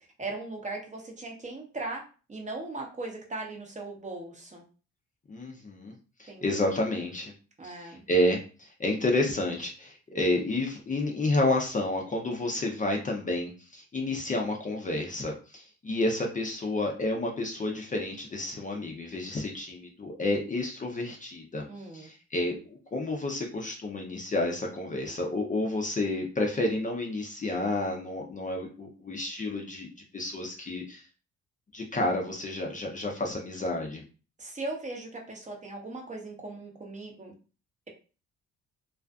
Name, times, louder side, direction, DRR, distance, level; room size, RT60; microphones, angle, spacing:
voice 1, 0.2-2.0 2.3-4.6 6.3-6.7 7.6-8.0 21.7-22.1 34.4-37.3, right 2 dB, 25° right, 0 dB, 0.7 m, -38 dB
voice 2, 5.3-5.9 6.2-7.3 7.6-21.6 21.9-29.9 30.1-31.0 31.7-34.0, left 2 dB, 25° left, 1 dB, 0.5 m, -30 dB
2.4 x 2.4 x 2.3 m, 0.36 s
cardioid pair, 90°, 30 cm